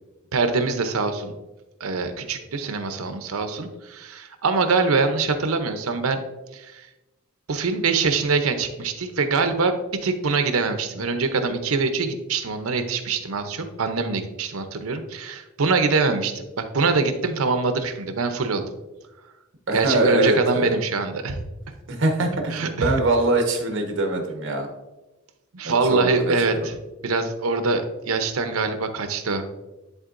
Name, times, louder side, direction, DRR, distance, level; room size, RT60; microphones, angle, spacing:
voice 1, 0.3-1.3 1.8-6.2 6.5-6.8 7.5-9.7 10.0-18.6 19.7-21.4 22.5-23.0 25.5-26.8 27.0-29.5, right 4 dB, 80° right, 8 dB, 0.7 m, -24 dB
voice 2, 19.7-20.8 21.9-24.7 25.6-26.3, right 2 dB, 60° right, 3 dB, 1.1 m, -23 dB
11.0 x 3.8 x 2.5 m, 1.1 s
head